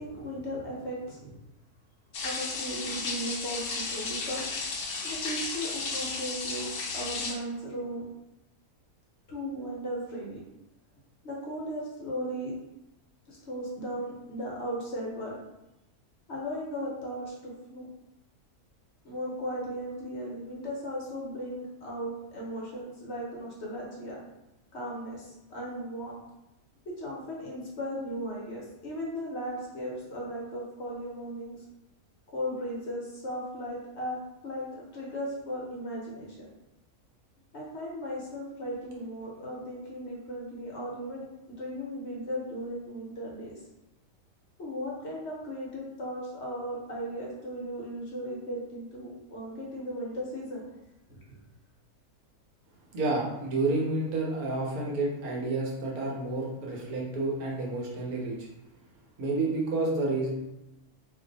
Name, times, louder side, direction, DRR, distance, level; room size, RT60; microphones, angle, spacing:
voice 1, 0.0-1.3 2.2-4.5 5.0-8.0 9.3-10.4 11.2-12.5 13.3-15.4 16.3-17.9 19.0-24.2 24.7-26.2 27.0-31.6 32.3-34.2 34.4-34.7 34.9-36.5 37.5-43.6 44.6-50.8 51.1-51.4, equal, 55° left, -4 dB, 1.0 m, -36 dB
sound 1, 2.1-7.3, left 4 dB, 90° left, 0.5 m, -34 dB
voice 2, 52.9-58.5 59.2-60.3, right 2 dB, 75° right, -2 dB, 1.3 m, -30 dB
2.6 x 2.6 x 3.8 m, 0.92 s
omnidirectional pair, 1.6 m